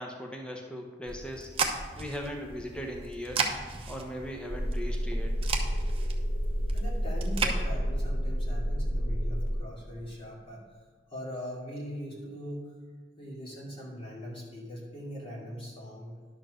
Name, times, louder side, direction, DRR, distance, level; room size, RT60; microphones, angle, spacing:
voice 1, 0.0-3.5 3.9-5.5, equal, 5° left, 0 dB, 0.8 m, -39 dB
sound 1, 1.1-7.6, right 4 dB, 30° right, 0.8 m, -35 dB
sound 2, 4.5-9.6, equal, 85° left, 2.4 m, -30 dB
voice 2, 6.7-10.6 11.1-12.7 13.2-16.1, equal, 30° left, -4 dB, 2.4 m, -41 dB
11.0 x 4.5 x 6.4 m, 1.5 s
head